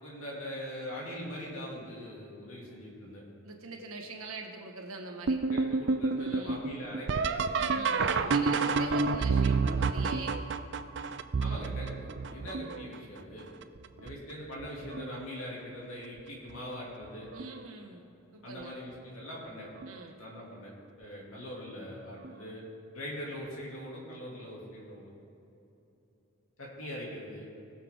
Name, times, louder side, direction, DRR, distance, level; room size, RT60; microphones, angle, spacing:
voice 1, 0.0-3.2 5.5-7.5 11.4-13.5 14.0-17.3 18.4-19.7 20.2-20.7 21.0-22.7 22.9-25.1 26.6-27.5, equal, 75° left, -4 dB, 2.6 m, -42 dB
voice 2, 3.4-5.4 6.2-6.6 7.6-10.4 11.4-11.7 17.3-18.0 18.3-18.7 19.8-20.2, right 3 dB, 80° right, 1 dB, 1.6 m, -43 dB
sound 1, 5.3-13.0 13.6-14.1 14.6-15.2 16.5-16.6 17.3-17.7 19.8-19.9 22.2-22.3, right 4 dB, 55° right, 0.5 m, -29 dB
20.5 x 7.0 x 3.7 m, 2.9 s
head